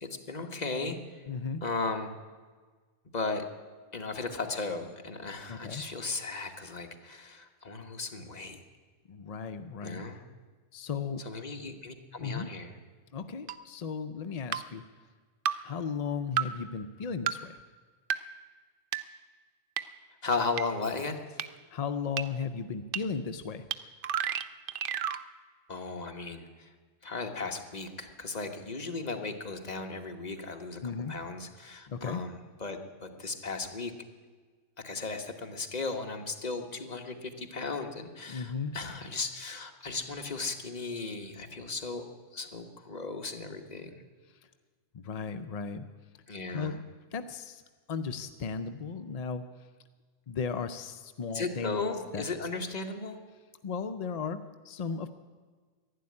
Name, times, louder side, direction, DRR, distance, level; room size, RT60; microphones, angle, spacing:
voice 1, 0.0-1.2 1.6-2.1 3.1-3.4 3.9-8.6 9.8-10.2 11.2-12.7 20.2-21.2 25.7-26.7 27.0-33.9 34.8-42.0 42.3-43.9 46.3-46.8 51.3-53.2, left 3 dB, 35° left, 4 dB, 1.3 m, -36 dB
voice 2, 1.3-1.6 5.5-5.8 9.1-10.0 10.7-11.2 12.2-12.5 13.1-14.8 15.6-17.6 21.7-23.7 30.8-31.2 31.9-32.2 38.3-38.8 44.9-45.9 46.5-46.8 47.1-47.6 47.9-49.5 50.3-51.8 52.1-52.2 53.6-55.1, left 5 dB, 55° left, 9 dB, 0.4 m, -35 dB
sound 1, 13.5-13.6 14.5-14.6 15.5-15.6 16.4-16.5 17.3-17.4 18.1-18.2 18.9-19.0 19.8-19.9 20.6-20.7 21.4-21.5 22.2-22.3 22.9-23.0 23.7-23.8 24.0-25.2, right 9 dB, 55° right, 0.6 m, -30 dB
12.0 x 11.5 x 9.7 m, 1.5 s
omnidirectional pair, 1.3 m